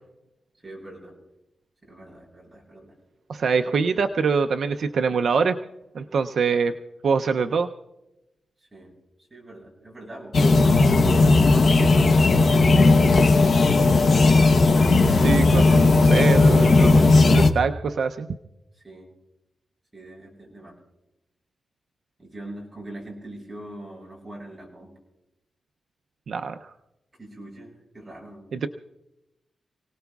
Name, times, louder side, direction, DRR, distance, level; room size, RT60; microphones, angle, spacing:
voice 1, 0.6-1.1 1.8-2.9 8.7-8.9 9.3-12.9 14.0-14.4 18.8-19.1 19.9-20.8 22.2-24.9 27.2-28.5, right 1 dB, 15° right, -4 dB, 7.3 m, -42 dB
voice 2, 3.3-5.6 5.9-6.7 7.0-7.7 15.2-18.3 26.3-26.7 28.5-28.7, right 5 dB, 60° right, 6 dB, 0.5 m, -24 dB
sound 1, 10.3-17.5, left 3 dB, 50° left, 0.9 m, -16 dB
29.0 x 18.5 x 2.4 m, 0.94 s
wide cardioid pair, 160°, 0 cm